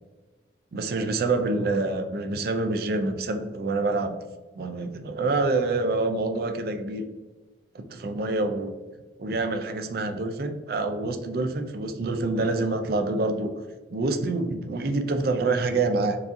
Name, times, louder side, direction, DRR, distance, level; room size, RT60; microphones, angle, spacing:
voice 1, 0.7-4.2 4.5-7.0 7.7-8.7 9.2-13.6 13.9-16.2, right 3 dB, 55° right, 6 dB, 0.4 m, -26 dB
4.7 x 2.7 x 2.5 m, 1.2 s
head